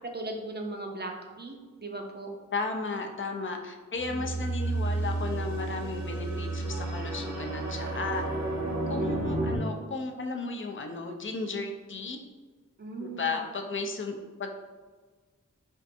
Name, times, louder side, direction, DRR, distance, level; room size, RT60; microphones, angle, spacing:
voice 1, 0.1-1.1 1.4-2.3 4.1-4.4 8.9-9.4 12.8-13.3, right 2 dB, 35° right, 2 dB, 0.5 m, -38 dB
voice 2, 2.5-8.3 8.9-12.2 12.9-14.5, left 3 dB, 40° left, 4 dB, 0.4 m, -34 dB
sound 1, 3.9-9.6, right 2 dB, 65° right, 0.8 m, -31 dB
4.4 x 2.5 x 2.5 m, 1.4 s
wide cardioid pair, 60°, 31 cm